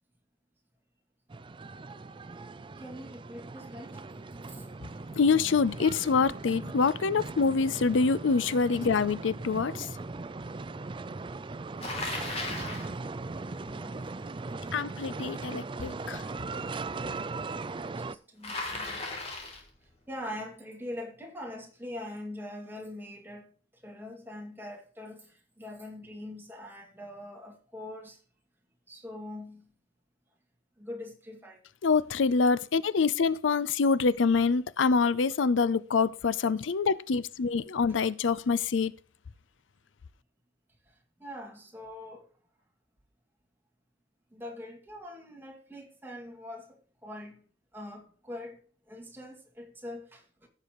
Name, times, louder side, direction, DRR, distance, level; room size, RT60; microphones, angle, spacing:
sound 1, 1.3-18.2, right 3 dB, 25° right, 0.4 m, -39 dB
voice 1, 2.8-4.0 4.5-4.6 12.4-14.0 17.9-19.4 20.1-23.5 23.8-28.2 28.9-29.6 30.8-31.6 33.5-33.6 41.2-42.3 44.3-46.8 47.0-47.4 47.7-48.6 48.9-50.5, left 1 dB, 10° right, 2.2 m, -43 dB
voice 2, 5.1-9.9 14.7-16.2 31.8-38.9, left 4 dB, 90° left, 0.5 m, -26 dB
Bicycle, 11.8-12.9 18.4-19.7, left 2 dB, 35° left, 3.0 m, -36 dB
15.5 x 6.8 x 3.0 m
head